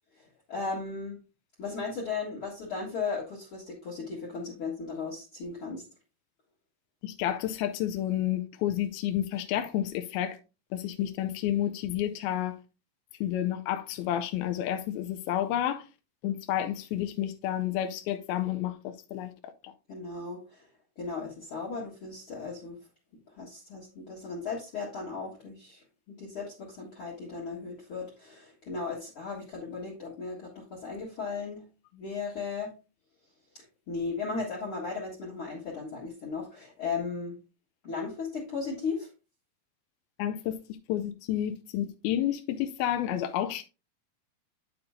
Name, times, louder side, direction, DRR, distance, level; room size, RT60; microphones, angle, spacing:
voice 1, 0.5-1.2 1.6-5.8 19.9-20.6 21.0-22.8 23.4-31.6 31.9-32.7 33.5-37.3 37.8-39.1, left 4 dB, 45° left, 1.9 m, -36 dB
voice 2, 7.0-10.4 10.7-12.5 13.2-15.8 16.2-19.7 40.2-40.6 40.9-43.6, left 11 dB, 80° left, 2.2 m, -30 dB
8.7 x 6.9 x 2.6 m
omnidirectional pair, 4.6 m